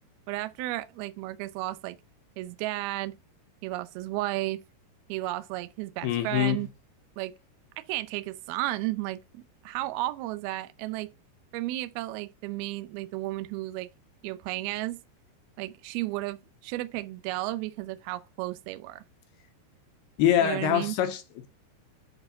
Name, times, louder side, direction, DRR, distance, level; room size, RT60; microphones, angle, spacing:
voice 1, 0.3-2.0 2.4-3.1 3.6-4.6 5.1-6.7 7.2-7.3 7.9-11.1 11.5-13.9 14.2-15.0 15.6-19.0 20.4-21.0, right 17 dB, 85° right, 2.2 m, -33 dB
voice 2, 6.0-6.6 20.2-21.5, left 10 dB, 80° left, 2.4 m, -25 dB
8.1 x 4.5 x 5.6 m
omnidirectional pair, 5.2 m